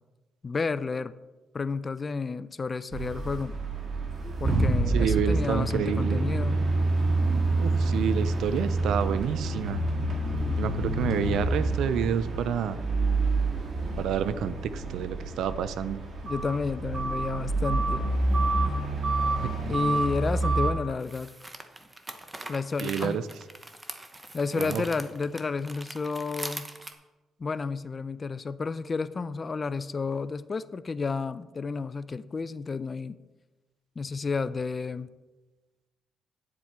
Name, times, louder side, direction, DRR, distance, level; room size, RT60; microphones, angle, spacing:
voice 1, 0.4-1.1 1.5-3.6 4.4-6.6 16.2-18.1 18.6-19.0 19.7-21.3 22.5-23.2 24.3-26.7 27.4-33.2 34.0-35.1, left 4 dB, 35° left, 15 dB, 0.4 m, -31 dB
sound 1, 2.9-20.7, right 2 dB, 50° right, 2.0 m, -27 dB
voice 2, 4.9-6.2 7.6-9.8 10.6-12.8 14.0-16.0 19.4-19.8 22.8-23.2 24.5-24.8, right 8 dB, 80° right, 14 dB, 0.5 m, -29 dB
sound 2, 18.2-18.3 20.9-26.9, right 2 dB, 15° right, 0.9 m, -42 dB
9.5 x 7.5 x 4.4 m, 1.1 s
cardioid pair, 90°, 0 cm